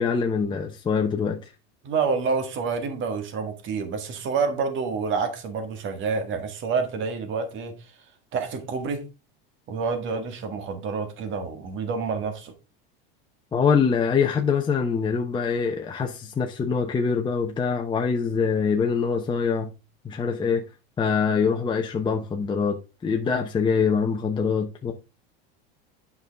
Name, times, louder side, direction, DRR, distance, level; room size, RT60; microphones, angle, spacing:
voice 1, 0.0-1.5 13.5-19.7 20.0-20.7 21.0-24.9, left 6 dB, 15° left, 0.8 m, -24 dB
voice 2, 1.8-7.7 8.3-9.1 9.7-12.5, right 5 dB, 40° right, 1.8 m, -28 dB
8.3 x 5.5 x 3.5 m
supercardioid pair, 125°, 30 cm